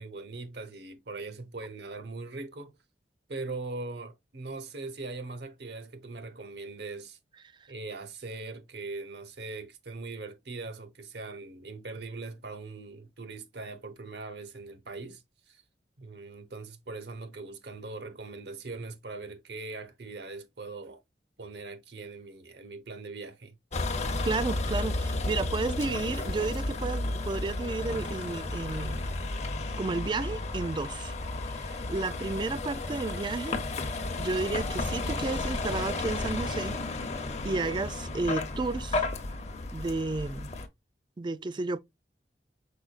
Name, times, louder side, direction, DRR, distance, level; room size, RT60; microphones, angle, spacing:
voice 1, 0.0-2.7 3.3-7.2 7.7-15.6 16.0-21.0 21.4-23.5, right 3 dB, 65° right, 0.9 m, -41 dB
Vehicle, 23.7-40.7, left 2 dB, 40° left, 0.6 m, -33 dB
voice 2, 24.2-29.2 29.8-31.1 31.5-33.6 34.2-36.8 37.4-39.1 39.7-40.5 41.2-41.8, right 3 dB, 25° right, 0.3 m, -32 dB
5.0 x 4.3 x 2.4 m
head